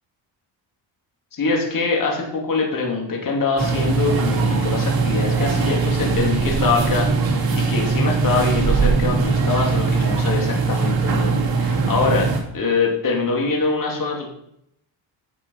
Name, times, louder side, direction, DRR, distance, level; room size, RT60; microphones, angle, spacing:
voice 1, 1.3-12.3 12.5-14.3, left 4 dB, 45° left, 0 dB, 2.7 m, -23 dB
sound 1, 3.6-12.4, right 4 dB, 50° right, 2.7 m, -20 dB
10.0 x 5.6 x 5.4 m, 0.73 s
cardioid pair, 105°, 45 cm